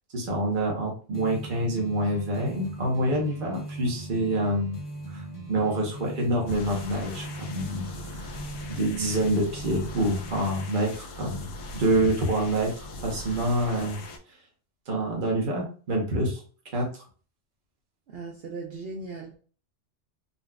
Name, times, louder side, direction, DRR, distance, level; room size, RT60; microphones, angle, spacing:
voice 1, 0.1-4.8 5.1-8.3 8.7-14.0 14.9-16.4 16.7-16.9, right 1 dB, 45° right, 1.0 m, -27 dB
sound 1, 1.1-10.7, right 1 dB, 25° left, 0.4 m, -40 dB
sound 2, 6.5-14.2, left 2 dB, 75° left, 0.9 m, -41 dB
voice 2, 18.1-19.4, right 3 dB, 65° right, 0.7 m, -38 dB
3.9 x 2.3 x 2.2 m
omnidirectional pair, 1.2 m